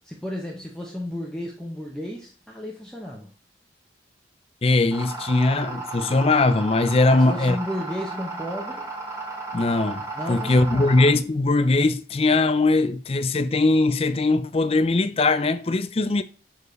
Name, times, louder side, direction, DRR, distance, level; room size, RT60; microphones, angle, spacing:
voice 1, 0.1-3.3 7.1-8.9 10.1-10.9, left 1 dB, 5° left, 0.8 m, -33 dB
voice 2, 4.6-7.6 9.5-16.2, left 2 dB, 30° left, 0.4 m, -20 dB
sound 1, 4.9-11.1, right 3 dB, 15° right, 1.5 m, -34 dB
6.6 x 4.6 x 3.1 m
head